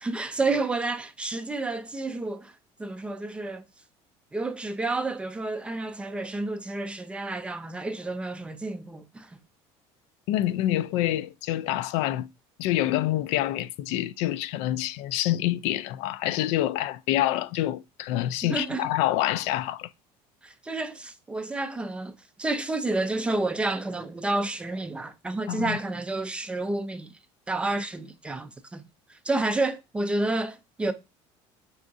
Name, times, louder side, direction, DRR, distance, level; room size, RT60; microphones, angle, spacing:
voice 1, 0.0-2.5 2.8-3.6 4.3-9.3 18.5-18.9 20.4-27.1 27.5-28.8 29.2-30.9, right 2 dB, 10° right, 0.3 m, -30 dB
voice 2, 10.3-12.3 12.6-19.9 25.5-25.8, left 14 dB, 70° left, 0.4 m, -27 dB
5.3 x 3.5 x 2.6 m
cardioid pair, 170°, 12 cm